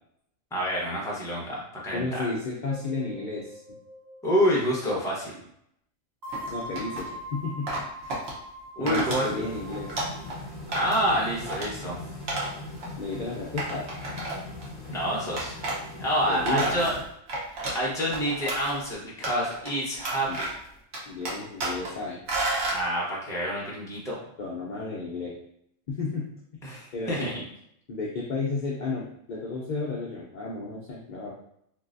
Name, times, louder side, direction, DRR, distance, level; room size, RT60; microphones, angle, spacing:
voice 1, 0.5-2.3 4.2-5.4 8.8-9.3 10.7-12.0 14.9-15.6 16.0-16.9 17.7-20.5 22.7-24.2 26.6-27.4, equal, 5° left, -4 dB, 0.6 m, -28 dB
voice 2, 1.9-3.6 6.5-7.7 8.8-9.9 13.0-13.9 16.3-16.8 20.3-20.4 21.0-22.2 24.4-25.4 25.9-26.7 26.9-27.3 27.9-31.4, left 3 dB, 60° left, -3 dB, 0.5 m, -32 dB
sound 1, 2.7-5.0 6.2-10.5, equal, 40° right, 0.8 m, -42 dB
sound 2, 6.3-7.1 7.7-8.3 8.9-9.2 9.6-10.4 10.7-11.1 11.4-11.7 12.3-12.5 12.8-12.9 13.6-14.6 15.4-15.8 16.2-17.8 18.1-18.8 19.2-19.7 20.0-20.7 20.9-21.9 22.3-22.8, right 2 dB, 65° right, 1.1 m, -31 dB
sound 3, 8.9-17.0, left 2 dB, 20° left, 1.0 m, -41 dB
3.1 x 2.6 x 2.5 m, 0.73 s
omnidirectional pair, 1.3 m